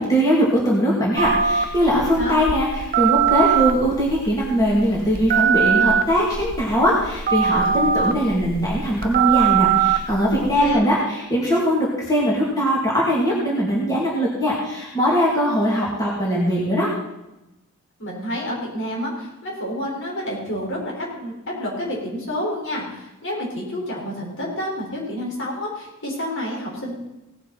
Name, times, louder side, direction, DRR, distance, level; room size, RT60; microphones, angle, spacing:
voice 1, 0.0-16.9, equal, 15° left, -5 dB, 2.6 m, -21 dB
Telephone, 1.2-10.7, right 8 dB, 45° right, 0.7 m, -22 dB
voice 2, 2.1-2.4 10.4-10.9 18.0-21.3 21.6-27.0, equal, 60° left, -3 dB, 4.8 m, -29 dB
18.0 x 9.9 x 4.2 m, 0.93 s
head